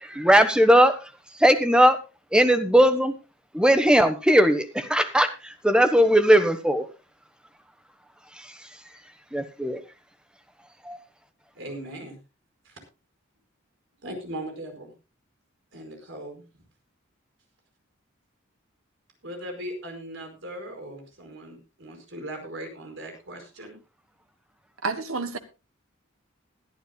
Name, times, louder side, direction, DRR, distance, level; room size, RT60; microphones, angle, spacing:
voice 1, 0.0-1.0 1.4-2.0 2.3-3.1 3.5-6.9 9.3-9.8 10.8-11.0, equal, 5° right, 1.2 m, -19 dB
voice 2, 11.5-12.2 12.6-12.7 14.0-14.9 15.7-16.4 19.2-23.8, right 1 dB, 65° right, 5.0 m, -38 dB
voice 3, 24.8-25.4, right 3 dB, 85° right, 1.6 m, -29 dB
21.0 x 11.5 x 2.3 m
head